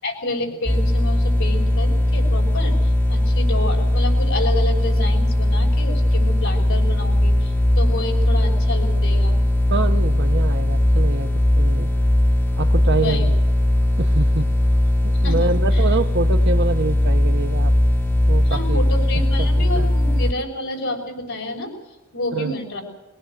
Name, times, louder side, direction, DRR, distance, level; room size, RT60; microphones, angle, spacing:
voice 1, 0.0-9.4 12.9-13.3 15.2-15.8 18.4-21.7 22.1-22.8, left 1 dB, 65° left, 1 dB, 6.2 m, -29 dB
sound 1, 0.7-20.3, left 1 dB, 10° left, 0.9 m, -19 dB
sound 2, 1.5-19.7, equal, 85° left, 4.8 m, -29 dB
voice 2, 9.7-11.9 12.6-13.3 14.0-14.5 15.2-17.7 18.3-18.8 19.4-19.5 19.7-19.9 22.3-22.5, right 3 dB, 55° right, 8 dB, 1.0 m, -26 dB
22.5 x 19.0 x 7.9 m, 1.1 s
head